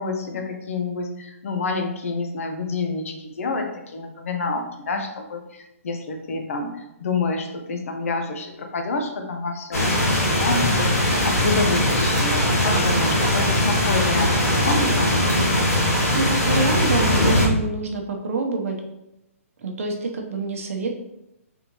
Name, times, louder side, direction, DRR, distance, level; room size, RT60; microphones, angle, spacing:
voice 1, 0.0-15.4, left 3 dB, 65° left, 4 dB, 0.7 m, -28 dB
sound 1, 9.7-17.5, left 1 dB, 85° left, 1.4 m, -20 dB
voice 2, 15.8-18.8 19.6-21.0, right 3 dB, 65° right, 2 dB, 0.9 m, -27 dB
3.8 x 3.5 x 3.0 m, 0.88 s
hypercardioid pair, 150°, 8 cm